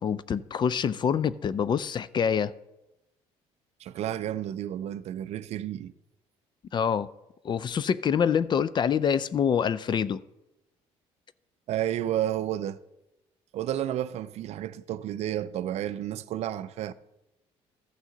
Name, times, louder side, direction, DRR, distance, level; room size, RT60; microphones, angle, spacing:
voice 1, 0.0-2.5 6.7-7.1 7.4-10.2, left 7 dB, 40° left, 0.4 m, -26 dB
voice 2, 3.8-5.9 11.7-12.8 13.5-16.9, right 11 dB, 60° right, 0.5 m, -31 dB
14.0 x 6.2 x 3.9 m
cardioid pair, 95°, 12 cm